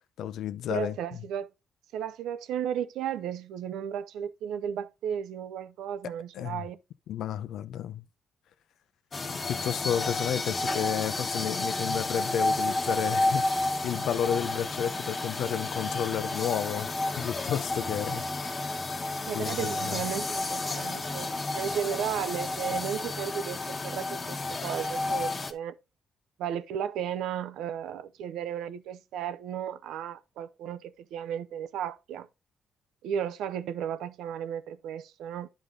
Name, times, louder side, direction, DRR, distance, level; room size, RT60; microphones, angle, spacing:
voice 1, 0.2-1.0 6.3-6.6 7.1-8.0 9.5-16.9 17.2-18.6 19.3-20.1, left 9 dB, 75° left, 0.7 m, -32 dB
voice 2, 0.7-1.5 1.9-6.8 19.3-25.8 26.4-32.3 33.0-35.5, right 9 dB, 85° right, 0.6 m, -34 dB
sound 1, 9.1-25.5, left 2 dB, 35° left, 1.3 m, -31 dB
9.8 x 5.1 x 3.8 m
cardioid pair, 90°, 0 cm